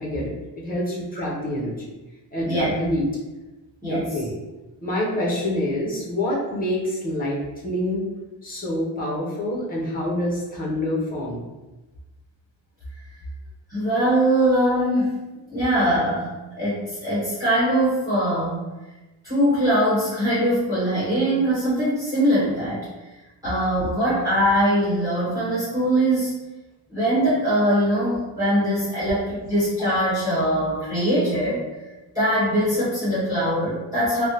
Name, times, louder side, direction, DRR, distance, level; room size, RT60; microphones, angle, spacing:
voice 1, 0.0-1.8 2.3-3.1 3.8-4.4 4.8-8.1 8.4-11.4, left 1 dB, 20° left, -4 dB, 0.6 m, -26 dB
voice 2, 13.7-15.2 15.5-18.6 19.2-22.9 23.4-26.4 26.9-31.6 32.1-34.3, equal, 10° right, -11 dB, 1.5 m, -22 dB
3.3 x 2.0 x 2.8 m, 1.1 s
cardioid pair, 170°, 44 cm